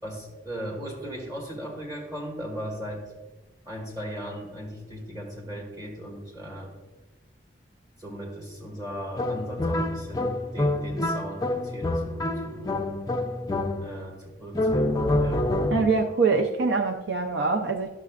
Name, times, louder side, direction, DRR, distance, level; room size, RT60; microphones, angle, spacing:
voice 1, 0.0-3.1 3.7-6.7 8.0-12.8 13.8-15.5, equal, 25° right, -1 dB, 2.0 m, -37 dB
sound 1, 9.2-14.1 14.5-16.1, left 1 dB, 20° left, 0.4 m, -27 dB
voice 2, 15.7-17.9, right 4 dB, 75° right, 6 dB, 0.5 m, -24 dB
11.0 x 6.7 x 2.4 m, 1.2 s
head